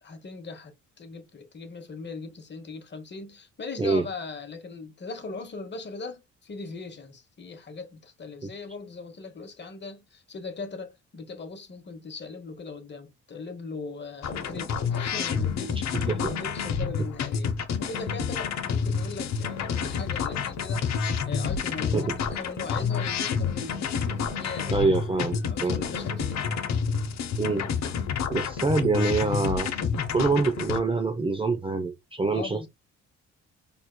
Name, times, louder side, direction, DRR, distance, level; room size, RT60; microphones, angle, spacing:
voice 1, 0.0-24.9 25.4-26.5 32.3-32.7, left 4 dB, 35° left, 1.1 m, -40 dB
sound 1, 14.2-30.8, left 6 dB, 60° left, 0.9 m, -29 dB
voice 2, 15.9-16.3 21.9-22.2 24.7-25.8 27.4-27.7 28.3-29.7 30.1-32.7, right 3 dB, 20° right, 0.5 m, -25 dB
4.5 x 3.4 x 2.2 m
cardioid pair, 90°, 30 cm